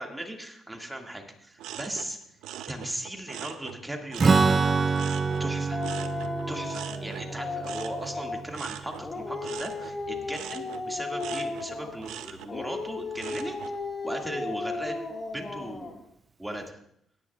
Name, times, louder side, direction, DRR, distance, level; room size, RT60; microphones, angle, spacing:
voice 1, 0.0-2.2 2.7-5.0 5.4-5.8 6.5-13.6 14.0-14.9 15.3-16.0 16.4-16.8, right 1 dB, 10° right, 2 dB, 2.0 m, -37 dB
sound 1, 1.6-4.6 4.9-13.8 14.2-14.7, right 10 dB, 90° right, 0.5 m, -42 dB
Strum, 4.2-9.8, right 4 dB, 35° right, 0.4 m, -27 dB
Dog, 5.7-8.5 9.0-12.1 12.5-16.0, left 3 dB, 35° left, 1.3 m, -35 dB
18.5 x 10.0 x 2.4 m, 0.70 s
cardioid pair, 90°, 0 cm